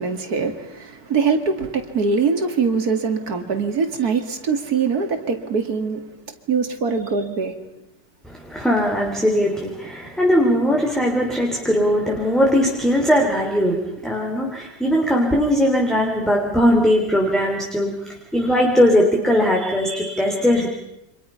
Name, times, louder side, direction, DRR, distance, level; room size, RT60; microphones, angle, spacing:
voice 1, 0.0-6.0 6.5-7.6, right 5 dB, 60° right, 2.7 m, -22 dB
voice 2, 8.2-20.7, equal, ahead, 3.3 m, -19 dB
30.0 x 26.0 x 5.7 m
omnidirectional pair, 1.9 m